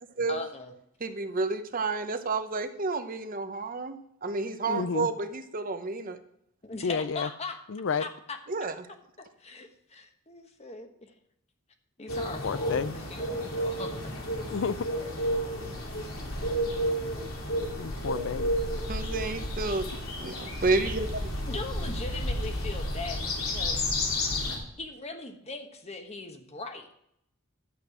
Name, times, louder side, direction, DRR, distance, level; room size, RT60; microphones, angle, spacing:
voice 1, 0.3-0.7 6.6-7.6 8.0-8.4 9.2-11.1 12.0-14.1 21.5-23.8 24.8-26.9, left 3 dB, 30° left, 5 dB, 1.2 m, -39 dB
voice 2, 1.0-6.2 8.5-8.9 18.9-19.9 20.2-21.3, right 3 dB, 40° right, 9 dB, 0.8 m, -30 dB
voice 3, 4.7-5.1 6.8-7.3 7.7-8.1 12.4-13.0 14.5-14.8 17.8-18.5, left 5 dB, 65° left, 16 dB, 0.5 m, -30 dB
sound 1, 12.1-24.6, equal, 80° left, 2.8 m, -31 dB
11.0 x 8.2 x 4.9 m, 0.74 s
head